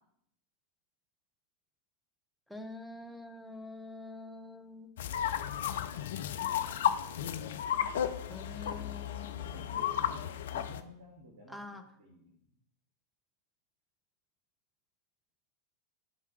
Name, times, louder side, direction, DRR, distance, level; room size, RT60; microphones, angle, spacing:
voice 1, 2.5-4.9 8.3-10.4 11.5-11.8, left 2 dB, ahead, 8 dB, 0.8 m, -46 dB
sound 1, 5.0-10.8, left 9 dB, 60° left, 0.4 m, -33 dB
voice 2, 9.4-12.3, equal, 60° right, -1 dB, 1.5 m, -54 dB
10.5 x 3.6 x 4.5 m, 0.73 s
figure-of-eight pair, 90°, 0 cm